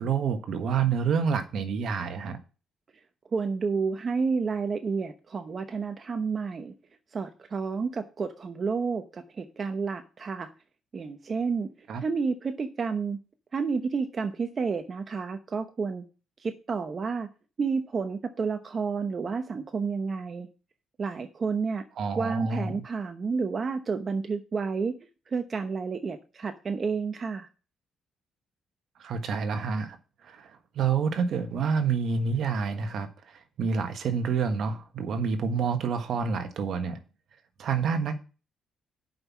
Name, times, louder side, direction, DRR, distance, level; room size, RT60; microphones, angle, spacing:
voice 1, 0.0-2.4 11.9-12.0 22.0-22.7 29.0-30.0 30.2-37.0 37.6-38.2, right 6 dB, 65° right, 1.4 m, -28 dB
voice 2, 3.3-6.7 7.1-10.5 10.9-13.2 13.5-16.0 16.4-17.3 17.6-20.5 21.0-21.8 22.2-25.0 25.3-27.5, right 5 dB, 40° right, 0.9 m, -30 dB
7.8 x 5.6 x 6.1 m
cardioid pair, 90°, 0 cm